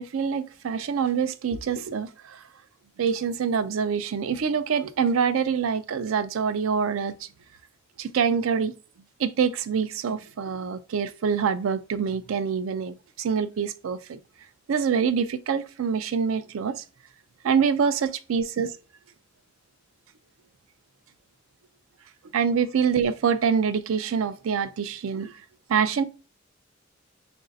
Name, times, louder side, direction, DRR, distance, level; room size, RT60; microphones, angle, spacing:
voice 1, 0.0-2.4 3.0-7.3 8.0-8.7 9.2-14.2 14.7-16.8 17.4-18.7 22.3-25.4 25.7-26.0, right 6 dB, 85° right, 0.4 m, -25 dB
3.1 x 2.6 x 3.8 m
head